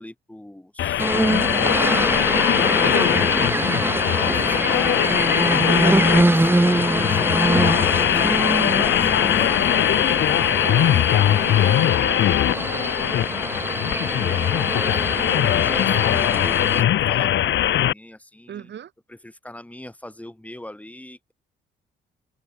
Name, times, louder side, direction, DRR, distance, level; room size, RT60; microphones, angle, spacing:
voice 1, 0.0-3.1 4.1-5.2 5.6-9.9 10.7-10.9 11.4-12.0 14.1-18.7 19.1-21.2, left 1 dB, 5° left, 6.0 m, -39 dB
sound 1, 0.8-17.9, left 12 dB, 65° left, 1.1 m, -21 dB
sound 2, 1.0-16.8, right 2 dB, 10° right, 3.4 m, -24 dB
voice 2, 10.4-13.0 18.5-18.9, right 9 dB, 60° right, 4.3 m, -39 dB
cardioid pair, 90°, 20 cm